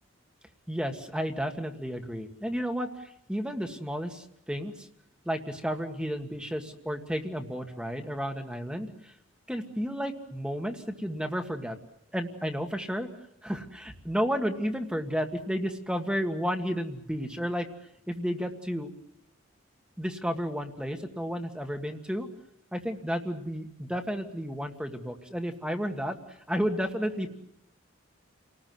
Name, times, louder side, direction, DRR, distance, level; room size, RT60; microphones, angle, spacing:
voice 1, 0.7-4.9 5.2-9.1 9.5-11.8 12.1-13.1 13.4-17.7 18.1-18.9 20.0-22.3 22.7-26.2 26.5-27.3, equal, 5° right, 5 dB, 1.7 m, -32 dB
29.5 x 19.5 x 7.7 m, 0.79 s
head